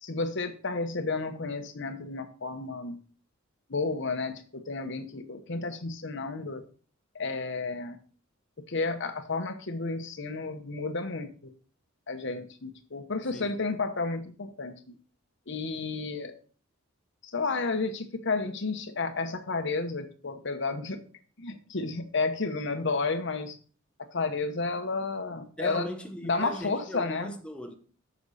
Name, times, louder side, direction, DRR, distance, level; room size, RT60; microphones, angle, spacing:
voice 1, 0.0-3.0 3.7-6.6 7.1-8.0 8.7-11.5 12.1-14.8 15.5-16.3 17.2-21.0 21.4-23.6 24.0-25.9 26.2-27.4, left 3 dB, 60° left, 1.0 m, -32 dB
voice 2, 25.6-27.7, left 1 dB, 5° left, 0.8 m, -38 dB
8.2 x 6.1 x 4.1 m
head